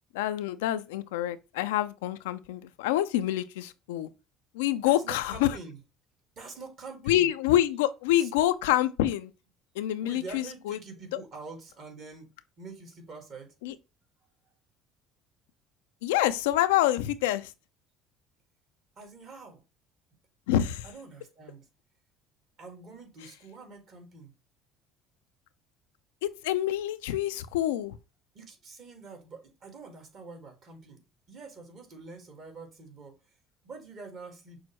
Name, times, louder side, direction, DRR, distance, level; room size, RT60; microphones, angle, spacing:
voice 1, 0.1-4.1 4.5-5.6 7.1-9.3 9.8-10.8 13.6-13.7 16.0-17.5 20.5-20.8 26.2-28.0, left 13 dB, 80° left, 0.3 m, -27 dB
voice 2, 4.8-5.8 6.4-7.3 8.2-8.3 10.0-13.6 19.0-19.6 20.8-21.7 22.6-24.3 28.3-33.2 33.6-34.6, right 4 dB, 55° right, 1.8 m, -46 dB
6.2 x 2.1 x 2.9 m
hypercardioid pair, 70°, 0 cm